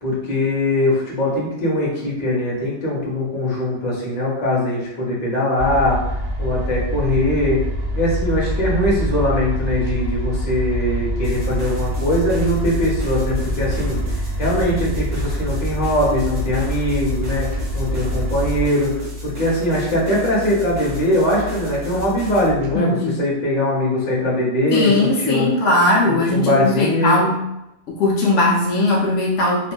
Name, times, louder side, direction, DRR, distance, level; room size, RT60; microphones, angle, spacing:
voice 1, 0.0-6.0 6.4-7.6 7.9-14.0 14.4-25.5 26.0-27.2, left 1 dB, 40° left, -5 dB, 0.9 m, -21 dB
sound 1, 5.6-18.7, equal, 40° right, 0.8 m, -25 dB
sound 2, 7.7-22.8, equal, 85° right, 0.3 m, -34 dB
sound 3, 11.2-22.5, right 1 dB, 65° right, 1.6 m, -39 dB
voice 2, 22.7-23.2 24.7-27.5 27.9-29.7, left 2 dB, 75° left, -2 dB, 0.9 m, -19 dB
3.1 x 2.5 x 2.2 m, 0.88 s
omnidirectional pair, 1.3 m